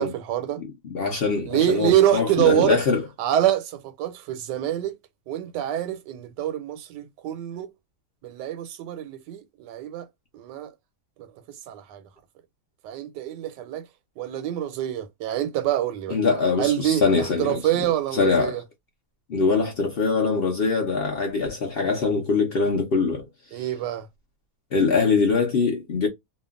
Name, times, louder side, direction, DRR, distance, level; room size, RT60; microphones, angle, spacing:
voice 1, 0.0-0.6 1.4-2.8 3.2-5.0 5.3-7.7 8.2-10.1 10.3-10.7 11.2-11.3 11.7-12.0 12.8-13.8 14.2-16.2 16.6-18.6 23.5-24.1, right 12 dB, 85° right, 1.2 m, -25 dB
voice 2, 0.6-3.0 16.1-17.6 18.1-18.6 19.3-23.3 24.7-26.1, left 4 dB, 55° left, 0.7 m, -23 dB
2.8 x 2.4 x 2.3 m
omnidirectional pair, 1.8 m